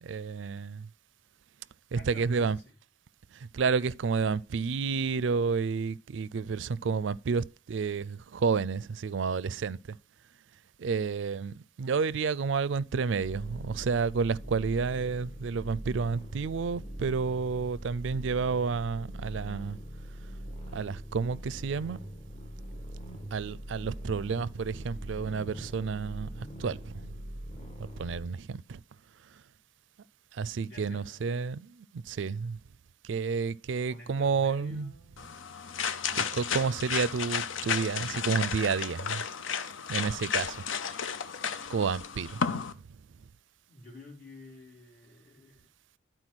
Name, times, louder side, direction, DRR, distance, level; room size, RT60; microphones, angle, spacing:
voice 1, 0.0-0.9 1.9-2.6 3.3-10.0 10.8-19.8 20.7-22.0 23.3-27.2 28.0-28.8 30.3-32.6 33.0-34.9 36.2-39.2 39.9-40.6 41.7-42.7, right 5 dB, 70° right, 0.4 m, -30 dB
voice 2, 1.9-2.7 30.4-31.2 33.8-35.4 43.7-45.7, left 2 dB, 55° left, 4.8 m, -50 dB
sound 1, 13.2-28.3, right 1 dB, 30° left, 1.8 m, -42 dB
sound 2, 35.2-42.7, left 7 dB, 80° left, 0.7 m, -33 dB
11.5 x 4.5 x 6.1 m
head